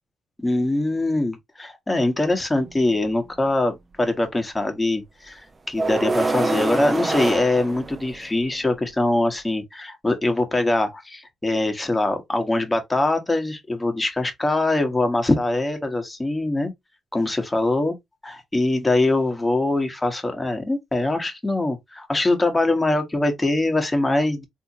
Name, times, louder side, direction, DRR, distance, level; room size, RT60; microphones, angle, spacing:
voice 1, 0.4-16.7 17.1-17.9 18.3-24.4, left 2 dB, 15° left, 1.1 m, -23 dB
sound 1, 2.6-2.7 5.8-8.4, right 3 dB, 25° right, 0.7 m, -25 dB
3.6 x 2.7 x 2.7 m
cardioid pair, 90°, 0 cm